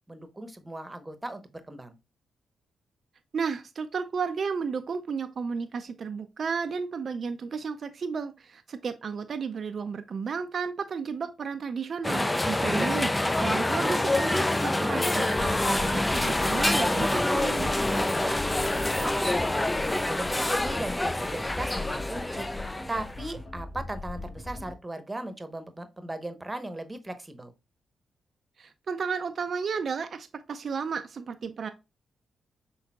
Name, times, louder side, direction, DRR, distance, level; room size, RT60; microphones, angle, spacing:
voice 1, 0.1-1.9 12.6-12.9 17.9-18.5 19.0-22.5 22.9-27.5, right 1 dB, 20° right, 0.9 m, -37 dB
voice 2, 3.3-17.7 28.6-31.7, right 5 dB, 55° right, 0.4 m, -33 dB
sound 1, 12.0-23.3, left 1 dB, 20° left, 0.3 m, -26 dB
sound 2, 15.4-24.7, left 2 dB, 50° left, 2.9 m, -39 dB
5.7 x 3.8 x 2.3 m
hypercardioid pair, 40°, 0 cm